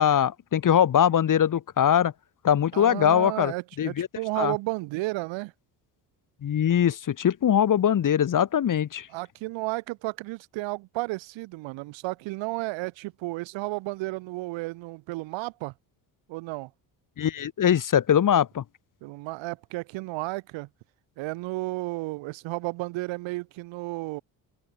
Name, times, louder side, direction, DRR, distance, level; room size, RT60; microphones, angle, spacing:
voice 1, 0.0-2.1 2.4-3.5 3.8-4.1 4.4-4.5 6.4-9.1 17.2-18.6, left 9 dB, 45° left, 1.4 m, -22 dB
voice 2, 2.7-5.5 9.1-15.7 16.3-16.7 19.0-20.7 21.2-24.2, right 21 dB, 85° right, 5.7 m, -33 dB
supercardioid pair, 80°, 44 cm